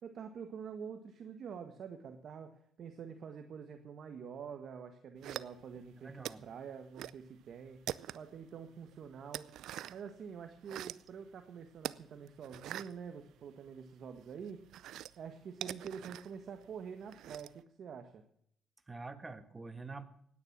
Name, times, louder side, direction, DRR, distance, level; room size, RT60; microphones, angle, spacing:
voice 1, 0.0-2.5 2.8-9.5 9.9-14.6 15.2-18.2, right 6 dB, 60° right, 6 dB, 1.5 m, -47 dB
sound 1, 5.2-5.9 6.2-7.2 7.5-8.4 8.8-10.1 10.5-11.1 11.8-13.8 14.1-17.6, right 12 dB, 80° right, 0.5 m, -44 dB
voice 2, 6.0-6.4 18.9-20.0, right 3 dB, 25° right, 10 dB, 1.5 m, -46 dB
17.5 x 9.9 x 6.1 m, 0.68 s
cardioid pair, 90°, 0 cm